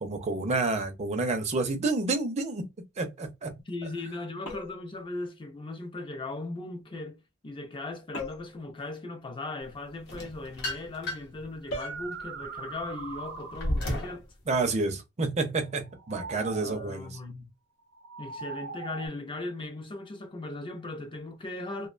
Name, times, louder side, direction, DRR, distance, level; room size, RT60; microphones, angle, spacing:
voice 1, 0.0-2.7 3.0-3.5 14.5-17.2, right 3 dB, 35° right, 0.5 m, -29 dB
voice 2, 3.7-14.3 16.6-17.5 18.2-21.9, left 2 dB, 25° left, 0.4 m, -38 dB
sound 1, 4.4-4.9 8.1-8.6 11.7-12.0, left 1 dB, 85° left, 0.7 m, -38 dB
sound 2, 10.1-11.4 12.0-14.2, left 1 dB, 55° left, 0.8 m, -33 dB
sound 3, 10.6-10.8 11.6-13.9 15.8-17.0 17.9-19.1, right 4 dB, 80° right, 0.7 m, -41 dB
2.4 x 2.2 x 2.4 m
head